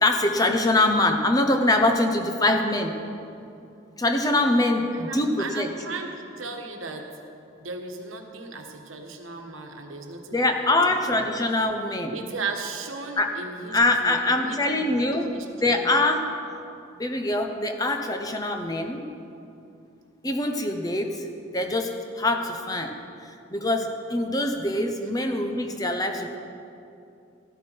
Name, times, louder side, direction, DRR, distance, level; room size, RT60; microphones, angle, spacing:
voice 1, 0.0-2.9 4.0-5.7 10.3-12.1 13.2-13.3 13.7-15.3 15.6-16.3 17.0-19.0 20.2-21.3 21.5-26.4, left 2 dB, 20° left, 5 dB, 0.8 m, -24 dB
voice 2, 4.9-7.1 7.6-10.5 11.1-11.3 12.1-15.9, right 3 dB, 85° right, 4 dB, 1.3 m, -36 dB
14.5 x 12.0 x 4.6 m, 2.6 s
head